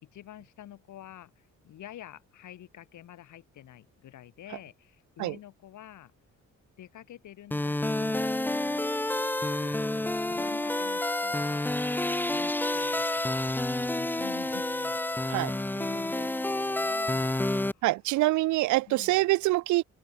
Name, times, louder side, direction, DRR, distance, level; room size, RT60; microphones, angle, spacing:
voice 1, 0.0-6.1 6.8-8.9 9.4-11.8 12.3-17.9 18.9-19.3, left 12 dB, 75° left, 3.9 m, -49 dB
sound 1, 7.5-17.7, left 1 dB, 5° left, 0.6 m, -29 dB
voice 2, 17.8-19.8, right 19 dB, 70° right, 0.4 m, -25 dB
cardioid pair, 90°, 30 cm